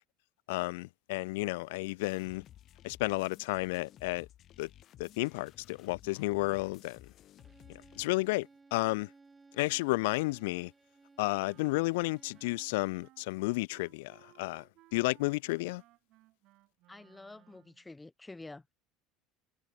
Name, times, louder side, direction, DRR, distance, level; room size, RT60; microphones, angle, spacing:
voice 1, 0.5-2.4 2.8-4.3 4.6-4.7 5.0-7.1 7.7-9.1 9.5-10.7 11.2-15.8, left 23 dB, 85° left, 0.5 m, -32 dB
sound 1, 2.0-8.1, left 12 dB, 50° left, 5.6 m, -56 dB
Bowed string instrument, 7.4-12.8, right 3 dB, 15° right, 1.3 m, -60 dB
Wind instrument woodwind instrument, 11.3-17.9, right 18 dB, 60° right, 5.0 m, -63 dB
voice 2, 16.9-18.7, left 2 dB, 10° left, 3.4 m, -48 dB
supercardioid pair, 110°, 0 cm